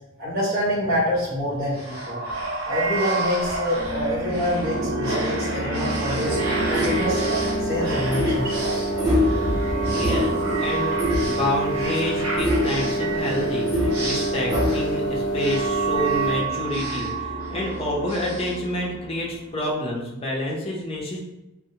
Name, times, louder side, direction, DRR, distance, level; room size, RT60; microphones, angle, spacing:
voice 1, 0.2-2.2 2.7-6.4 6.7-7.2 7.6-8.9, equal, 45° right, -8 dB, 0.8 m, -26 dB
sound 1, 1.7-19.4, right 2 dB, 90° right, 0.8 m, -29 dB
sound 2, 6.2-16.4, equal, 15° right, 0.9 m, -25 dB
voice 2, 9.9-21.2, left 1 dB, 25° left, -3 dB, 0.5 m, -28 dB
2.7 x 2.1 x 2.7 m, 1.0 s
head